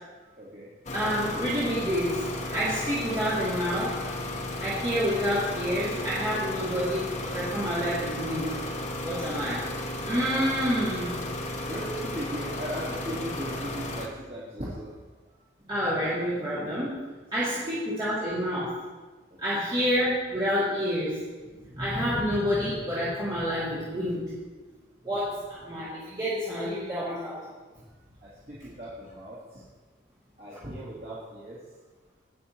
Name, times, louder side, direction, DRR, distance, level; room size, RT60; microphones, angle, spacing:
voice 1, 0.2-0.7 11.7-14.9 17.4-17.7 19.5-19.6 28.2-29.6 30.4-31.6, equal, 50° right, -10 dB, 2.6 m, -38 dB
sound 1, 0.9-14.1, left 1 dB, 40° left, 0.9 m, -34 dB
voice 2, 0.9-2.2 2.5-3.9 4.6-8.5 9.0-9.6 10.0-11.1 15.7-16.9 17.3-18.7 19.4-21.2 21.7-24.3 25.0-27.4, equal, 25° right, -11 dB, 2.3 m, -28 dB
18.5 x 6.4 x 2.9 m, 1.3 s
head